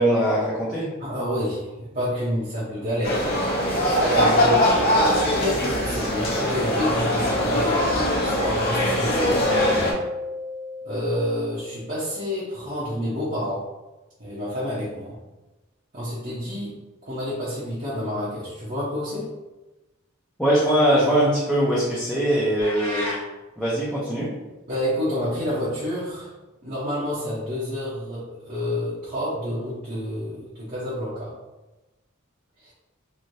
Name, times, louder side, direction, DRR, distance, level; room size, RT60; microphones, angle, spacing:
voice 1, 0.0-0.9 20.4-23.1 23.6-24.3, right 1 dB, ahead, -9 dB, 0.6 m, -21 dB
voice 2, 1.0-3.2 4.0-4.7 5.0-9.4 10.8-13.6 14.2-15.2 15.9-16.8 17.0-19.3 24.7-26.3 26.6-31.3 32.6-32.7, equal, 40° right, -9 dB, 0.8 m, -28 dB
sound 1, 3.0-9.9, left 1 dB, 50° left, 0.8 m, -22 dB
Keyboard (musical), 9.4-12.1, left 3 dB, 80° left, 1.0 m, -32 dB
sound 2, 22.6-23.2, left 1 dB, 30° left, 1.0 m, -31 dB
3.1 x 2.7 x 2.7 m, 1.1 s
head